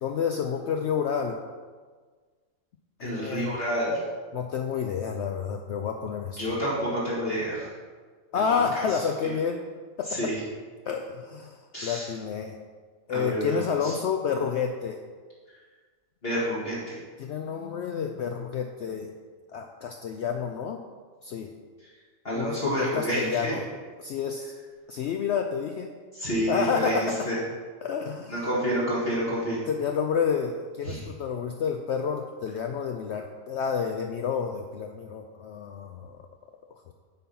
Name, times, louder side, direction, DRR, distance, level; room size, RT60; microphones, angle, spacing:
voice 1, 0.0-1.4 3.0-3.6 4.3-6.6 8.3-9.6 10.0-10.3 10.9-12.6 13.1-15.0 17.2-19.1 19.5-20.8 21.2-21.5 22.4-23.6 24.0-24.5 24.9-25.9 26.5-27.1 27.8-28.5 29.7-36.2 36.9-37.0, left 6 dB, 65° left, 4 dB, 0.8 m, -29 dB
voice 2, 3.0-4.0 6.4-7.7 8.3-8.6 10.1-10.4 11.7-12.1 13.1-13.9 16.2-16.8 22.2-23.5 26.1-26.9 27.3-27.4 28.3-29.6 30.9-31.0, equal, 45° left, -8 dB, 2.1 m, -28 dB
9.1 x 4.4 x 5.4 m, 1.5 s
omnidirectional pair, 1.4 m